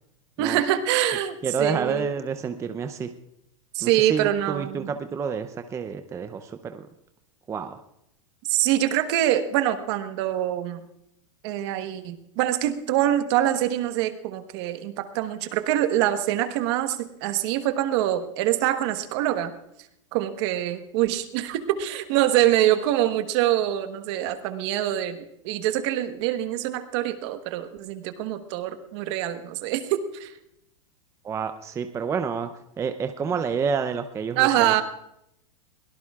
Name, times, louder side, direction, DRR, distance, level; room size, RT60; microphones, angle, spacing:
voice 1, 0.4-2.1 3.7-4.9 8.5-10.8 11.4-19.5 20.1-30.3 34.3-34.8, right 12 dB, 50° right, 9 dB, 1.3 m, -25 dB
voice 2, 1.4-3.1 3.8-6.8 7.5-7.8 31.2-32.5 32.8-34.8, right 6 dB, 15° right, 8 dB, 0.6 m, -29 dB
22.5 x 17.5 x 2.4 m, 0.81 s
hypercardioid pair, 135°, 18 cm